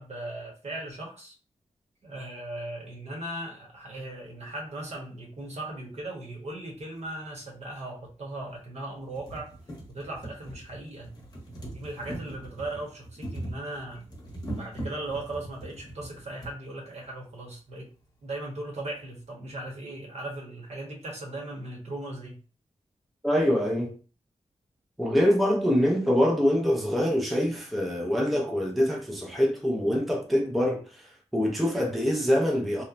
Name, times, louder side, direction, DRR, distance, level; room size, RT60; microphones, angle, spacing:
voice 1, 0.0-1.3 2.0-9.5 9.9-11.1 11.7-14.1 14.5-17.9 18.2-22.4, right 1 dB, 60° right, 0.9 m, -38 dB
sound 1, 7.0-7.1 8.1-8.2 8.6-8.7 9.0-16.6 17.5-17.6 17.8-17.9, right 1 dB, 30° left, 0.8 m, -41 dB
voice 2, 23.2-23.9 25.0-31.1 31.3-32.8, equal, ahead, 0.4 m, -24 dB
2.9 x 2.1 x 2.4 m
wide cardioid pair, 160°, 13 cm